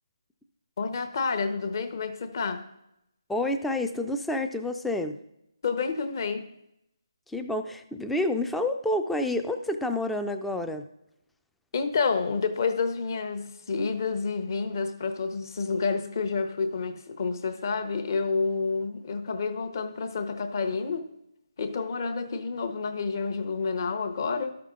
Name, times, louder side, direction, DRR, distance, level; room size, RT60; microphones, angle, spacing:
voice 1, 0.8-2.6 5.6-6.5 11.7-21.1 21.6-24.5, left 4 dB, 45° left, 0.8 m, -29 dB
voice 2, 3.3-5.2 7.3-10.8, left 1 dB, ahead, 0.3 m, -29 dB
12.5 x 5.8 x 3.7 m
figure-of-eight pair, 160°, 3 cm